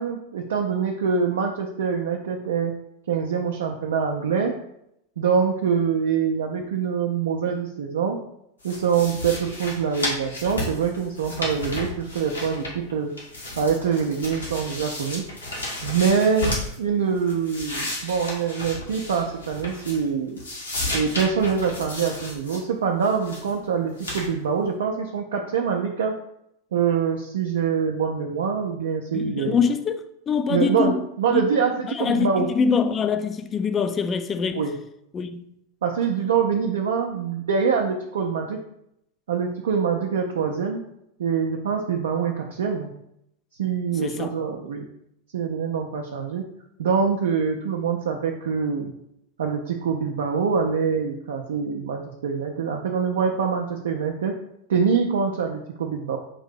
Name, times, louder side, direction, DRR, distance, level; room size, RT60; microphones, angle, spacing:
voice 1, 0.0-2.7 3.1-4.5 5.2-8.2 8.6-13.1 13.6-15.2 15.8-20.4 20.9-26.1 26.7-29.6 30.5-32.5 34.6-34.7 35.8-38.6 39.3-40.8 41.2-42.9 43.6-44.8 45.3-46.4 46.8-48.9 49.4-54.3 54.7-56.2, right 6 dB, 60° right, 0.4 m, -24 dB
sound 1, 8.6-12.9 13.2-16.8 17.2-20.1 20.4-22.6 23.0-23.5 24.0-24.3, left 1 dB, 80° left, 1.3 m, -33 dB
voice 2, 29.1-31.0 31.3-31.4 31.9-34.6 35.1-35.5 44.0-44.4, left 6 dB, 25° left, 0.3 m, -24 dB
4.7 x 2.6 x 3.8 m
figure-of-eight pair, 90°, 0 cm